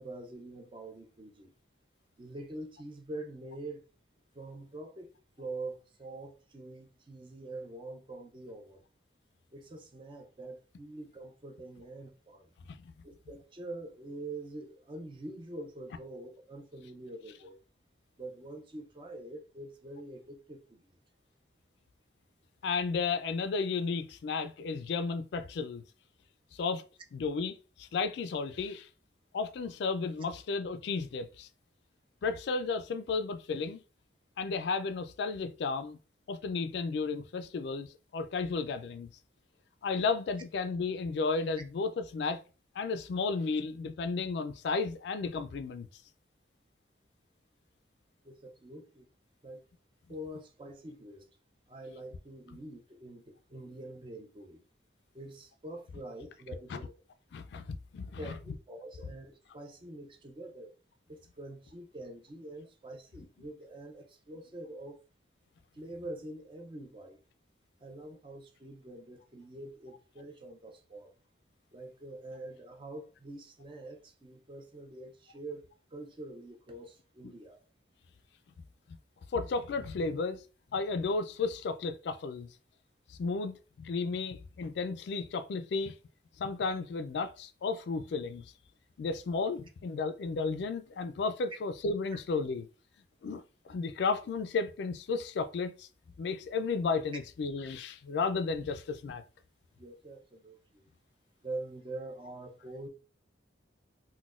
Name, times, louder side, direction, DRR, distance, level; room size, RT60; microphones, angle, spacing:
voice 1, 0.0-1.5 2.2-3.8 4.3-8.8 9.5-12.5 13.0-17.6 18.2-20.9 48.2-49.1 49.4-49.6 50.1-51.3 51.7-54.6 55.1-56.9 58.2-60.7 61.1-65.0 65.7-67.2 67.8-71.2 71.7-77.6 99.8-100.9 101.4-102.9, right 2 dB, 25° right, 0.4 m, -45 dB
voice 2, 22.6-25.8 26.5-26.8 27.1-28.9 29.3-31.5 32.2-33.8 34.4-36.0 36.3-39.1 39.8-42.4 42.8-45.9 56.7-56.8 57.3-58.3 77.2-77.3 79.3-80.4 80.7-82.5 83.1-85.9 86.4-88.5 89.0-92.7 93.2-95.9 96.2-99.2, left 4 dB, 65° left, 0.3 m, -33 dB
3.9 x 2.2 x 2.4 m
head